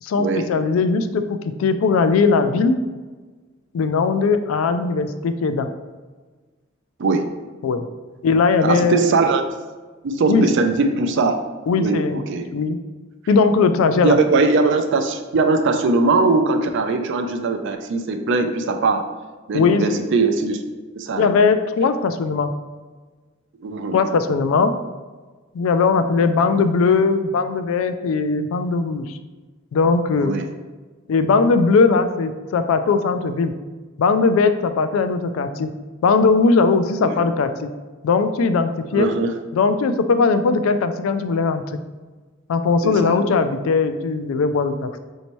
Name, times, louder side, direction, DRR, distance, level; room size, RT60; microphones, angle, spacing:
voice 1, 0.0-2.8 3.7-5.7 7.6-7.9 8.2-9.1 10.3-10.5 11.7-12.2 12.5-12.8 13.3-14.2 19.5-20.0 21.2-22.5 23.9-24.7 25.5-29.2 29.7-30.4 31.1-33.5 34.0-35.7 36.0-37.7 38.0-39.1 39.5-41.6 42.5-45.0, left 4 dB, 80° left, 9 dB, 0.3 m, -19 dB
voice 2, 8.6-9.4 10.0-11.4 11.8-12.5 14.0-19.1 19.5-20.6 21.0-21.3 23.6-24.0 30.2-30.4 37.0-37.2 38.9-39.3 42.8-43.2, right 3 dB, 65° right, 6 dB, 0.4 m, -20 dB
4.3 x 2.7 x 3.0 m, 1.3 s
head